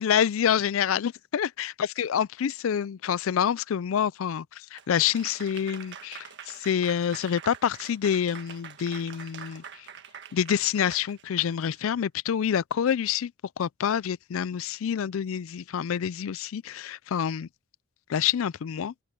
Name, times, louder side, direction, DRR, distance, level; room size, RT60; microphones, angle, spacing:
voice 1, 0.0-1.7 2.0-9.9 10.3-13.3 13.6-17.5 18.1-18.9, left 8 dB, 70° left, 0.4 m, -27 dB
Applause / Crowd, 4.8-12.0, right 7 dB, 55° right, 1.6 m, -45 dB
open air
head